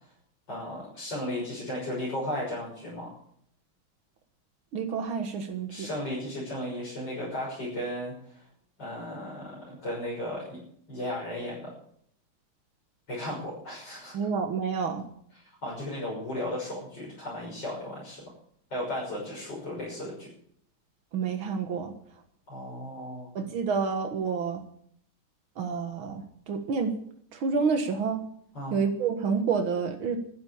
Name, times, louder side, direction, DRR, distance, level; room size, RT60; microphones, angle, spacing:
voice 1, 0.5-3.1 5.7-8.1 8.8-10.6 10.9-11.7 13.1-14.1 15.6-18.2 18.7-20.3 22.5-23.3 28.5-28.8, left 1 dB, 60° left, -6 dB, 6.9 m, -35 dB
voice 2, 4.7-5.9 14.1-15.0 21.1-21.9 23.4-24.6 25.6-26.9 27.3-28.2 28.7-30.2, right 5 dB, 90° right, 6 dB, 2.3 m, -29 dB
13.0 x 10.5 x 8.6 m, 0.65 s
omnidirectional pair, 2.2 m